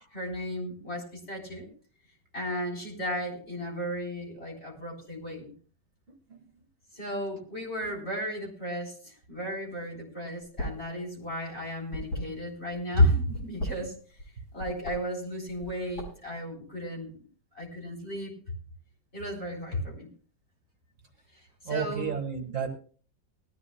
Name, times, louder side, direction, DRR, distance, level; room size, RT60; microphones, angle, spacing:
voice 1, 0.1-1.7 2.3-5.5 6.9-14.0 14.5-17.2 17.5-18.3 19.1-20.1 21.6-22.1, equal, 35° left, -1 dB, 4.0 m, -33 dB
sound 1, 10.4-10.9 11.2-12.8 13.2-14.3 14.6-15.0 15.5-16.3, equal, 70° left, 6.7 m, -36 dB
voice 2, 21.6-22.7, right 7 dB, 50° right, 4 dB, 1.9 m, -32 dB
20.0 x 13.5 x 2.2 m, 0.41 s
omnidirectional pair, 1.9 m